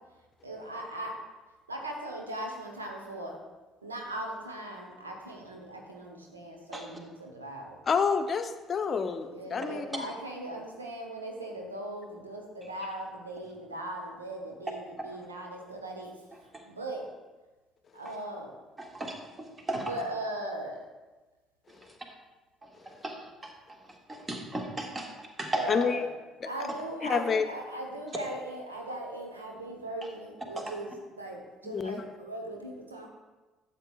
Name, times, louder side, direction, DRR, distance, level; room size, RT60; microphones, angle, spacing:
voice 1, 0.4-1.1 1.7-3.3 3.8-7.8 9.3-16.1 16.7-17.0 17.9-18.5 19.7-20.8 25.6-26.0 26.4-30.9 31.2-31.4 31.6-33.1, right 1 dB, 90° right, 1 dB, 1.0 m, -38 dB
voice 2, 7.9-10.1 25.7-26.1 26.4-26.7 27.0-27.5 31.6-32.2, left 5 dB, 40° left, 8 dB, 0.7 m, -29 dB
voice 3, 18.8-19.1 19.7-19.9 23.0-23.1 24.1-25.1 25.4-25.6 30.6-30.7, right 1 dB, 25° right, 1 dB, 1.6 m, -34 dB
12.0 x 7.5 x 2.4 m, 1.2 s
figure-of-eight pair, 55°, 0 cm